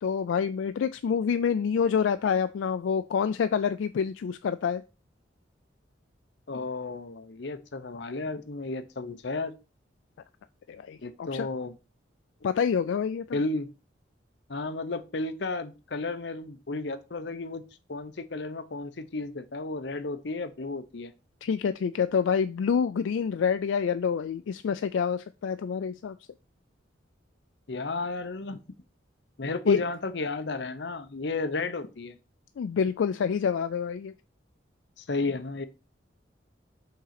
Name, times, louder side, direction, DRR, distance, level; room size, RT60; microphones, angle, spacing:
voice 1, 0.0-4.8 10.7-11.5 12.4-13.4 21.4-26.1 29.7-29.8 32.6-34.1, left 6 dB, 85° left, 11 dB, 0.3 m, -27 dB
voice 2, 6.5-9.5 11.0-11.7 13.3-13.7 14.5-17.6 17.9-21.1 27.7-28.6 29.4-32.2 35.0-35.7, left 3 dB, 65° left, 10 dB, 0.7 m, -33 dB
5.6 x 3.8 x 5.8 m, 0.31 s
head